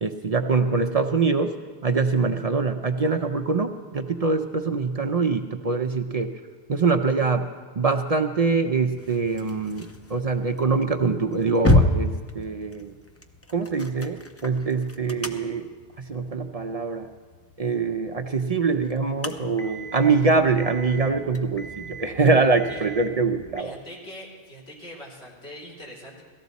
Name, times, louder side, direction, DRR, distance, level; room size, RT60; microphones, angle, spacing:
voice 1, 0.0-1.5 1.8-6.3 6.7-7.4 7.8-9.8 10.1-12.9 13.5-15.7 16.1-17.1 17.6-23.7, right 4 dB, 45° right, 5 dB, 0.6 m, -24 dB
sound 1, 9.0-23.6, left 2 dB, 15° left, 0.5 m, -31 dB
voice 2, 19.6-20.3 22.7-22.9 23.6-26.2, equal, 80° left, -5 dB, 3.7 m, -43 dB
17.5 x 14.0 x 4.1 m, 1.5 s
omnidirectional pair, 1.0 m